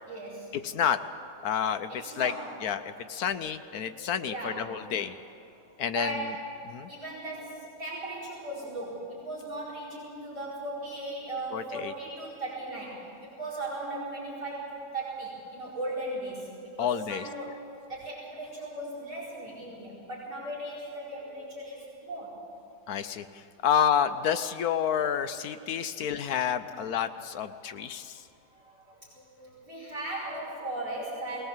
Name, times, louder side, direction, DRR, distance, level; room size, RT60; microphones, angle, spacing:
voice 1, 0.1-0.5 1.9-2.5 3.1-3.2 3.6-4.8 5.5-17.6 17.9-22.4 25.9-26.0 27.0-27.1 27.6-27.7 28.5-31.5, right 2 dB, 50° right, -6 dB, 5.2 m, -38 dB
voice 2, 0.6-1.0 1.4-1.9 2.2-2.3 2.6-5.1 5.8-6.3 6.7-6.9 11.5-11.9 16.8-17.2 22.9-28.2, left 8 dB, 65° left, 10 dB, 1.1 m, -29 dB
21.0 x 18.0 x 7.3 m, 2.6 s
omnidirectional pair, 1.9 m